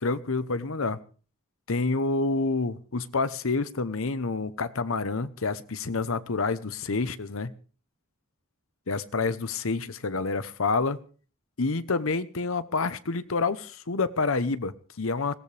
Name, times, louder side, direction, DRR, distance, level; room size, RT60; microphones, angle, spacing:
voice 1, 0.0-1.0 1.7-7.5 8.9-11.0 11.6-15.3, left 3 dB, 70° left, 0.9 m, -28 dB
21.5 x 16.5 x 3.4 m
head